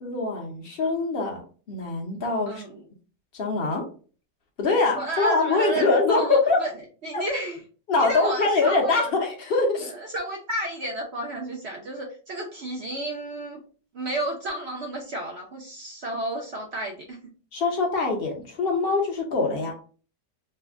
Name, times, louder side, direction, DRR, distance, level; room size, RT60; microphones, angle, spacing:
voice 1, 0.0-1.4 1.7-2.6 3.3-3.8 4.6-6.6 7.1-7.2 7.9-9.9 17.5-19.7, left 3 dB, 50° left, 1 dB, 0.7 m, -23 dB
voice 2, 2.5-2.8 5.0-6.7 7.0-7.6 8.0-9.1 9.9-13.6 13.9-17.2 19.5-19.6, right 2 dB, 65° right, 1 dB, 0.6 m, -31 dB
3.2 x 2.1 x 3.5 m, 0.39 s
omnidirectional pair, 1.8 m